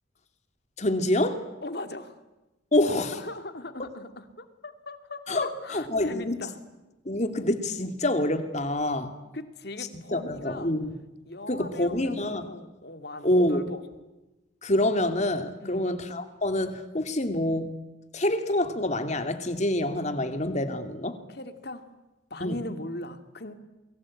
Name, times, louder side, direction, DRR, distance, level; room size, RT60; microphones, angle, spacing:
voice 1, 0.8-1.4 2.7-3.1 5.3-6.4 7.0-9.1 10.1-10.9 11.5-12.5 13.2-13.6 14.6-17.7 18.1-21.2 22.4-22.6, left 1 dB, 35° left, 8 dB, 2.7 m, -26 dB
voice 2, 1.6-2.2 3.0-6.6 9.3-10.7 11.3-13.8 15.6-15.9 21.3-21.9 22.3-23.5, left 2 dB, 55° left, 9 dB, 2.5 m, -39 dB
29.0 x 23.0 x 8.7 m, 1.0 s
head